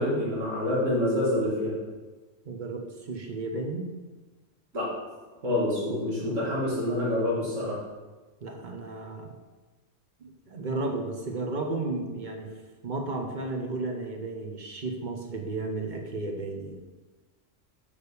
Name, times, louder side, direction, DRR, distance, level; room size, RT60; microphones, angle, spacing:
voice 1, 0.0-1.8 4.7-4.9 5.4-7.8, left 1 dB, 85° right, -7 dB, 2.6 m, -27 dB
voice 2, 2.4-3.9 8.4-9.3 10.2-12.5 12.8-16.8, right 2 dB, 40° right, 3 dB, 1.1 m, -33 dB
6.5 x 5.3 x 6.8 m, 1.3 s
omnidirectional pair, 1.3 m